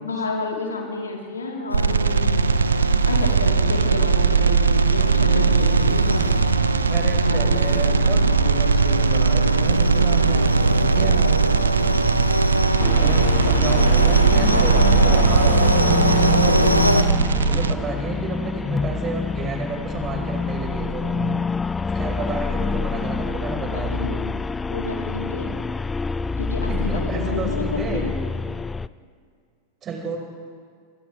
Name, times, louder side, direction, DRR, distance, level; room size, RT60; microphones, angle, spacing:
voice 1, 0.0-2.5 3.1-6.4 6.8-7.0 7.2-8.0 23.7-24.4 24.7-25.5 26.4-28.1, left 3 dB, 75° left, -2 dB, 4.3 m, -30 dB
sound 1, 1.7-17.7, right 6 dB, 70° right, 0.8 m, -20 dB
sound 2, 1.7-17.0, equal, 90° right, 1.2 m, -23 dB
voice 2, 6.9-11.4 13.0-16.7 17.4-21.4 21.9-24.0 26.7-28.1 29.8-30.2, right 3 dB, 25° right, 1 dB, 5.1 m, -31 dB
sound 3, 12.8-28.9, left 4 dB, 15° left, 0.4 m, -27 dB
28.0 x 26.5 x 3.6 m, 2.1 s
figure-of-eight pair, 90°, 0 cm